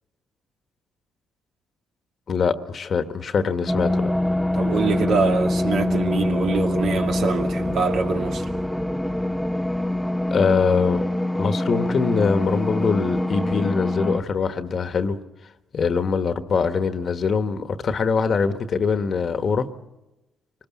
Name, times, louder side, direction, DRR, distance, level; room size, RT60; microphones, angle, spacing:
voice 1, 2.3-4.1 10.3-11.0 11.4-15.2 15.7-19.7, left 5 dB, 50° left, 1.3 m, -23 dB
sound 1, 3.7-14.2, left 1 dB, ahead, 0.7 m, -24 dB
voice 2, 4.5-8.4, right 4 dB, 70° right, 2.5 m, -24 dB
24.5 x 20.0 x 7.3 m
cardioid pair, 90°, 0 cm